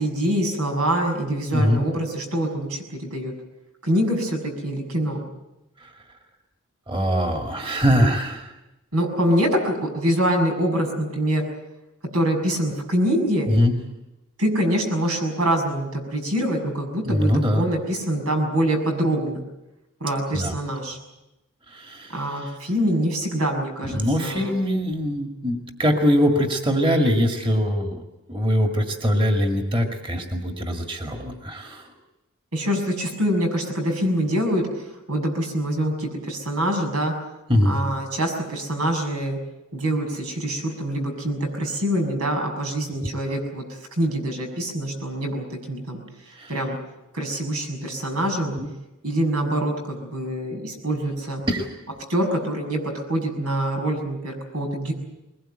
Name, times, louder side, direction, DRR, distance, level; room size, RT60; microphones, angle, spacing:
voice 1, 0.0-3.3 3.8-5.2 8.9-11.4 12.1-13.5 14.4-19.4 20.0-21.0 22.1-24.5 32.5-34.7 35.1-37.1 37.6-39.4 39.7-43.6 44.0-46.0 46.5-46.8 47.1-48.6 49.0-51.4 52.1-52.8 53.1-54.9, right 1 dB, 90° right, 3 dB, 6.6 m, -25 dB
voice 2, 6.9-8.5 13.5-13.7 17.1-17.6 20.3-20.6 21.7-22.5 23.8-28.0 28.3-31.9 37.5-37.8 46.3-46.6 48.6-48.7 51.5-51.7, equal, 25° right, 4 dB, 2.0 m, -22 dB
22.0 x 20.5 x 9.0 m, 0.95 s
head